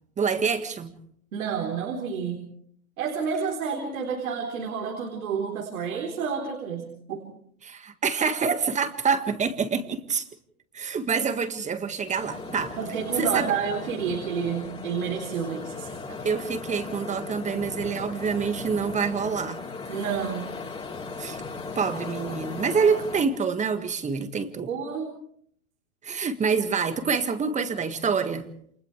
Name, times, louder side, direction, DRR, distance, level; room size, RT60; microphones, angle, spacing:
voice 1, 0.2-0.9 7.6-10.2 10.7-12.8 13.2-13.5 16.2-19.6 21.2-21.4 21.8-24.7 26.0-28.5, right 5 dB, 15° right, 9 dB, 1.8 m, -26 dB
voice 2, 1.3-2.4 3.0-7.2 12.8-15.9 19.9-20.5 24.7-25.1, right 6 dB, 70° right, 1 dB, 4.1 m, -29 dB
sound 1, 12.1-23.2, left 4 dB, 15° left, 3.5 m, -37 dB
29.5 x 27.0 x 3.4 m, 0.64 s
hypercardioid pair, 120°, 42 cm